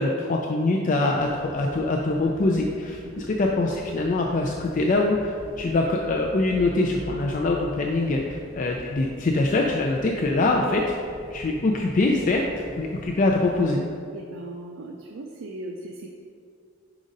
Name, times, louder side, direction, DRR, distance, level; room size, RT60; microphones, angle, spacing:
voice 1, 0.0-3.0 3.4-10.8 11.3-12.4 12.8-13.9, left 2 dB, 40° left, 0 dB, 0.3 m, -23 dB
sound 1, 1.1-13.6, equal, 5° right, 1.2 m, -44 dB
voice 2, 14.1-16.1, right 1 dB, 90° right, 1 dB, 0.5 m, -38 dB
4.9 x 3.9 x 5.2 m, 2.3 s
head